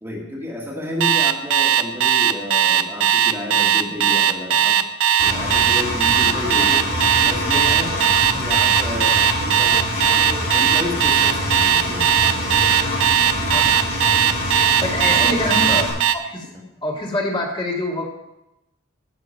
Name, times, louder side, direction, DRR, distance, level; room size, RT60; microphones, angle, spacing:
voice 1, 0.0-4.9 5.2-6.9 7.2-8.0 8.4-12.1 15.1-15.4 16.5-16.6, left 1 dB, 10° right, -2 dB, 1.7 m, -31 dB
Alarm, 1.0-16.2, right 9 dB, 75° right, 0.7 m, -17 dB
Engine, 5.2-15.9, left 1 dB, 65° left, 5.1 m, -25 dB
voice 2, 13.2-13.7 14.8-15.9 16.2-16.5 16.8-18.1, left 1 dB, 25° left, -1 dB, 1.9 m, -25 dB
16.0 x 6.2 x 5.4 m, 0.91 s
head